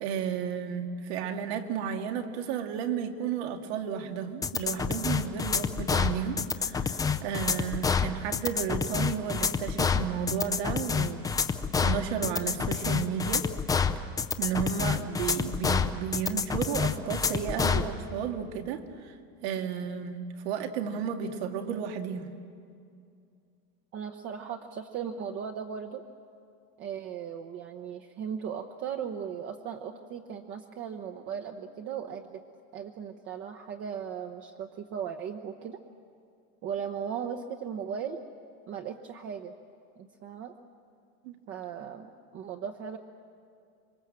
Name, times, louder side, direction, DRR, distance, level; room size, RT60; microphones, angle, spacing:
voice 1, 0.0-11.3 11.8-13.5 14.4-19.1 19.4-22.3 41.2-41.4, right 7 dB, 80° right, 5 dB, 2.1 m, -33 dB
sound 1, 4.4-17.9, left 5 dB, 10° left, 0.5 m, -28 dB
voice 2, 23.9-26.0 26.8-32.4 32.7-35.8 36.6-38.2 38.7-39.5 40.0-40.5 41.5-43.0, right 7 dB, 35° right, 3 dB, 1.0 m, -37 dB
27.0 x 24.0 x 7.6 m, 2.4 s
cardioid pair, 160°, 32 cm